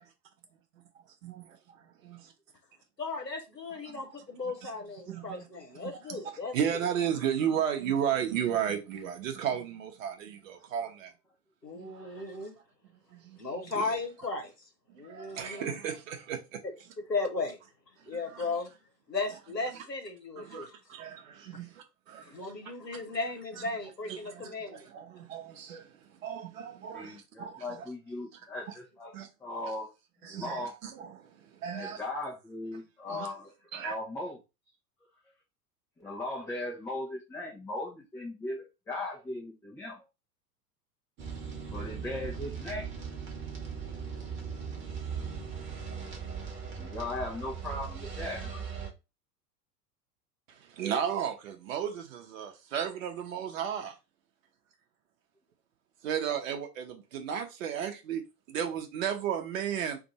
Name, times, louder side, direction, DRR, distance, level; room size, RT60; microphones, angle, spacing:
voice 1, 1.2-2.3 3.9-4.1 4.6-4.7 5.1-5.5 5.8-6.2 6.5-11.1 11.7-12.0 13.1-13.4 13.6-13.9 15.0-16.6 18.1-18.4 19.7-19.8 20.4-22.4 24.1-27.8 29.1-29.3 30.2-32.0 33.1-33.3 33.7-33.9 50.5-54.0 56.0-58.2 58.5-60.0, right 8 dB, 55° right, 0.9 m, -34 dB
voice 2, 3.0-6.8 11.6-12.5 13.4-15.8 17.1-17.6 18.0-18.7 19.1-20.7 22.2-24.9, left 3 dB, 90° left, 0.9 m, -36 dB
voice 3, 11.9-12.2 22.6-22.7 26.9-29.1 29.4-29.9 30.2-30.7 31.7-33.5 33.8-34.4 36.0-40.0 41.7-42.9 46.8-48.7, left 2 dB, 5° left, 0.4 m, -38 dB
sound 1, 41.2-48.9, right 6 dB, 25° right, 1.0 m, -39 dB
2.5 x 2.5 x 4.1 m
figure-of-eight pair, 85°, 48 cm